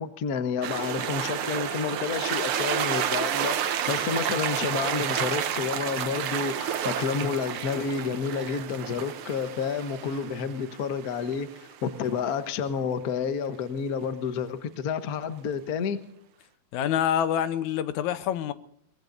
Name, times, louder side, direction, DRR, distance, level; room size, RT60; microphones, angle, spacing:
voice 1, 0.0-11.5 11.8-16.0, left 6 dB, 65° left, 0.9 m, -30 dB
sound 1, 0.6-12.1, right 9 dB, 65° right, 1.4 m, -30 dB
voice 2, 16.7-18.5, left 10 dB, 85° left, 2.2 m, -26 dB
23.5 x 20.0 x 2.6 m
omnidirectional pair, 3.3 m